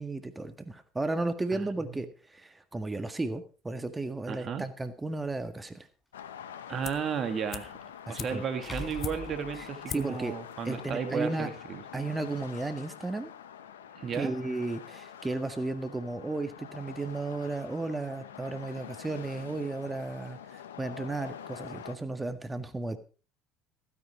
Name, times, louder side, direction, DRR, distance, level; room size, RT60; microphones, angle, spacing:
voice 1, 0.0-5.9 8.1-8.4 9.9-10.3 10.7-11.5 11.9-13.3 14.1-23.0, right 2 dB, 15° right, 10 dB, 1.7 m, -34 dB
voice 2, 1.5-2.0 4.3-4.6 6.7-7.8 8.1-11.8 14.0-14.3, right 7 dB, 45° right, 8 dB, 2.5 m, -34 dB
sound 1, 4.8-4.9 7.5-7.6 8.6-10.2, left 2 dB, 10° left, 7.4 m, -42 dB
sound 2, 6.1-21.9, left 9 dB, 85° left, 1.0 m, -46 dB
sound 3, 6.8-7.2 7.5-9.5 9.9-10.2 10.5-10.6, left 9 dB, 45° left, 0.9 m, -41 dB
16.0 x 9.7 x 4.7 m, 0.36 s
hypercardioid pair, 70°, 0 cm